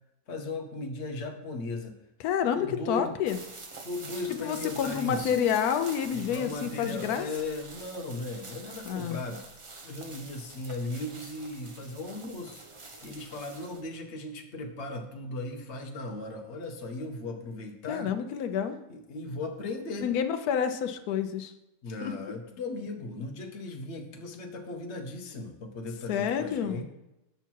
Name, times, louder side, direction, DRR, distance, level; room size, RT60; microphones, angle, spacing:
voice 1, 0.3-1.9 2.5-3.1 3.8-5.4 6.1-9.4 9.8-12.6 13.0-18.1 18.9-20.1 21.8-26.8, left 2 dB, 50° left, 3 dB, 1.2 m, -37 dB
voice 2, 2.2-3.4 4.4-7.3 8.9-9.2 17.9-18.8 20.0-21.5 22.0-22.1 26.1-26.8, left 8 dB, 85° left, 8 dB, 1.1 m, -29 dB
sound 1, 3.3-13.8, right 3 dB, 30° right, 0.6 m, -46 dB
8.1 x 5.8 x 4.5 m, 0.93 s
omnidirectional pair, 1.6 m